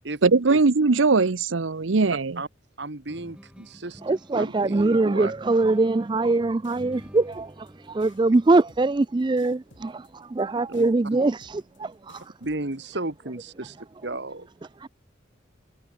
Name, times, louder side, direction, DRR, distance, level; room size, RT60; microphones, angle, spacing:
voice 1, 0.2-2.4, right 4 dB, 85° right, 0.8 m, -20 dB
voice 2, 2.8-4.0 4.4-5.3 10.7-11.2 12.4-13.8 14.0-14.5, right 2 dB, 60° right, 1.8 m, -34 dB
sound 1, 3.1-9.7, equal, 5° right, 3.5 m, -49 dB
voice 3, 4.0-12.4 13.6-13.7 14.0-14.2 14.6-14.9, right 2 dB, 25° right, 0.4 m, -23 dB
sound 2, 6.6-12.6, left 2 dB, 75° left, 3.0 m, -55 dB
head